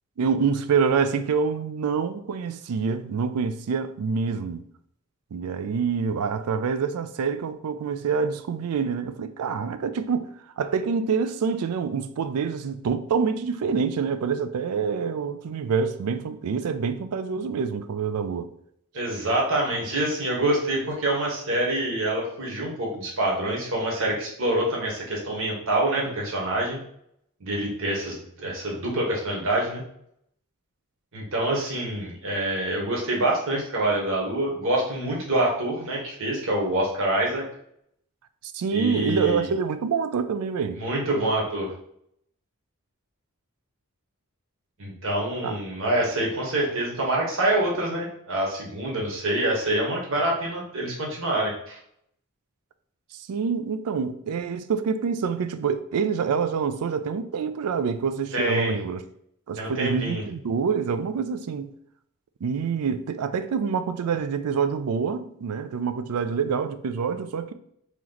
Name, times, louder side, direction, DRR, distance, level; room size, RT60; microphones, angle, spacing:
voice 1, 0.2-4.6 5.3-18.5 38.5-40.8 45.4-45.6 53.1-59.0 59.5-61.7 62.4-67.5, right 6 dB, 80° right, 0.4 m, -26 dB
voice 2, 18.9-26.8 27.4-29.8 31.1-37.4 38.7-39.4 40.7-41.7 44.8-51.8 58.3-58.7 59.6-60.2, right 1 dB, 60° right, 1.3 m, -26 dB
3.0 x 3.0 x 3.8 m
head